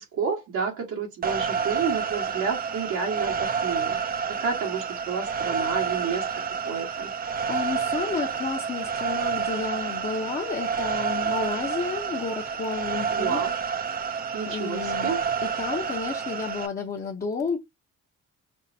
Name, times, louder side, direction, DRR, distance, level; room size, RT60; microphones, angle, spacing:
voice 1, 0.0-4.0 4.3-6.3 6.7-7.1 13.1-13.5 14.3-15.2, right 6 dB, 90° right, 1.8 m, -30 dB
sound 1, 1.2-16.7, right 6 dB, 30° right, 0.4 m, -29 dB
voice 2, 7.5-13.4 14.5-15.1 15.4-17.6, left 5 dB, 30° left, 0.8 m, -31 dB
5.4 x 2.1 x 2.7 m
cardioid pair, 90°, 30 cm